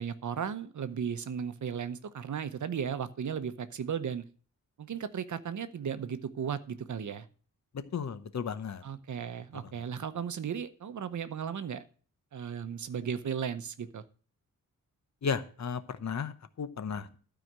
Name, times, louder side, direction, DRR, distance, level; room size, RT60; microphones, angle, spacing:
voice 1, 0.0-4.2 4.8-7.3 8.8-11.9 12.3-14.0, right 7 dB, 60° right, 13 dB, 0.8 m, -35 dB
voice 2, 7.7-8.8 15.2-17.2, left 6 dB, 55° left, 12 dB, 0.9 m, -34 dB
12.5 x 4.9 x 7.4 m, 0.41 s
wide cardioid pair, 175°, 33 cm